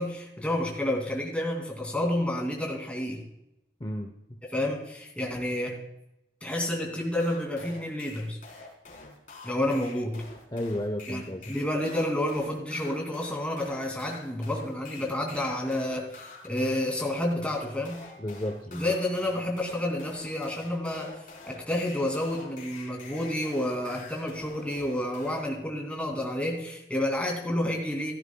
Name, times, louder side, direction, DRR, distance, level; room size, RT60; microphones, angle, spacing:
voice 1, 0.0-3.2 4.5-5.8 6.4-8.4 9.4-10.2 11.1-11.2 11.5-18.0 18.7-21.2 21.4-28.1, left 1 dB, 5° left, 0 dB, 2.5 m, -30 dB
voice 2, 3.8-4.4 10.5-11.6 18.2-18.9, left 1 dB, 25° left, 4 dB, 0.7 m, -33 dB
sound 1, 7.2-25.4, left 3 dB, 45° left, 3.9 m, -47 dB
16.0 x 13.0 x 2.3 m, 0.87 s
head